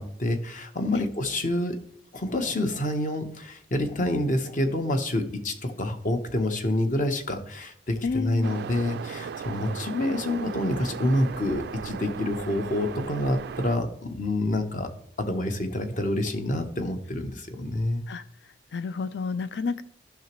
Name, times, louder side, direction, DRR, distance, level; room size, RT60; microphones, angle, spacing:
voice 1, 0.0-1.8 2.1-14.9 15.2-18.0, left 1 dB, 50° left, 7 dB, 1.0 m, -27 dB
voice 2, 8.0-8.5 18.1-18.2 18.7-19.8, left 4 dB, 70° left, 14 dB, 0.5 m, -29 dB
Waves surf, 8.4-13.8, right 6 dB, 65° right, 0.3 m, -37 dB
14.0 x 5.9 x 3.1 m, 0.70 s
head